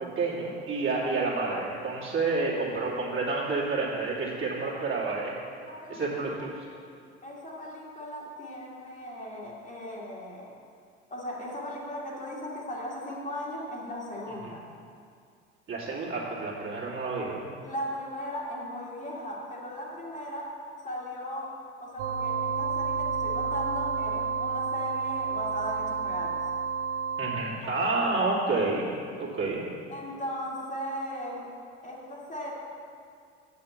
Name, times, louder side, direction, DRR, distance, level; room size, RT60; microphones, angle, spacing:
voice 1, 0.2-5.3 5.9-6.5 15.7-17.5 27.2-28.9 29.2-29.6, right 3 dB, 35° right, -6 dB, 2.6 m, -29 dB
voice 2, 5.6-6.0 6.4-6.5 7.2-10.6 11.1-14.6 17.6-20.6 20.8-26.5 27.6-27.9 29.9-31.5 31.8-32.5, equal, 20° left, -4 dB, 1.9 m, -37 dB
sound 1, 22.0-27.4, right 5 dB, 60° right, 0.8 m, -30 dB
8.7 x 5.8 x 7.1 m, 2.3 s
figure-of-eight pair, 60°, 34 cm